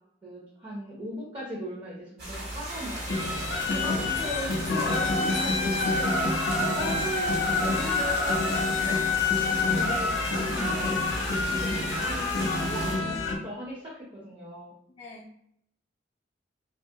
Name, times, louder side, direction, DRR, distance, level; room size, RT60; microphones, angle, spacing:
voice 1, 0.2-3.3 3.7-4.1 5.2-5.3 6.6-8.7 9.7-14.7, equal, 30° right, -4 dB, 0.5 m, -39 dB
sound 1, 2.2-13.0, right 1 dB, 60° right, 1.1 m, -37 dB
sound 2, 2.7-11.0, right 1 dB, 85° right, 0.8 m, -43 dB
sound 3, 3.1-13.4, left 3 dB, 90° left, 0.5 m, -27 dB
voice 2, 3.8-6.5 7.8-8.1 8.8-9.0 13.0-13.5 14.9-15.3, left 2 dB, 35° left, -4 dB, 0.4 m, -37 dB
2.7 x 2.3 x 2.7 m, 0.71 s
head